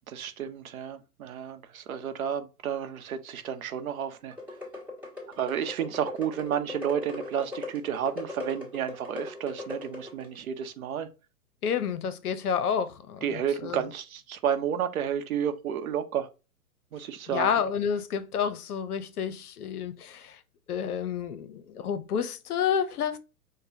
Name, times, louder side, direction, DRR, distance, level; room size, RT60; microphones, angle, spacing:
voice 1, 0.1-4.3 5.4-11.1 13.2-16.3 16.9-17.5, right 8 dB, 60° right, 0.7 m, -31 dB
sound 1, 4.3-10.4, left 3 dB, 5° right, 1.4 m, -39 dB
voice 2, 11.6-13.8 17.3-20.4 20.7-23.2, left 7 dB, 70° left, 0.7 m, -29 dB
4.9 x 2.2 x 2.6 m
hypercardioid pair, 120°, 47 cm